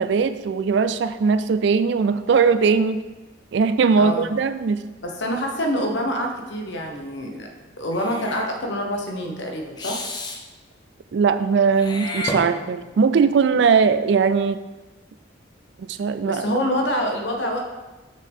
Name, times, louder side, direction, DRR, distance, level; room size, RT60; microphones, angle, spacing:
voice 1, 0.0-3.0 3.5-4.8 11.1-14.6 15.8-16.4, right 5 dB, 65° right, 12 dB, 0.3 m, -19 dB
voice 2, 4.0-4.3 5.0-7.5 7.8-10.0 16.2-17.6, equal, 70° left, 2 dB, 1.1 m, -26 dB
Meow / Hiss, 7.9-8.5 9.8-10.4 11.7-13.0, left 1 dB, 20° left, 0.6 m, -31 dB
6.4 x 5.7 x 3.6 m, 1.1 s
head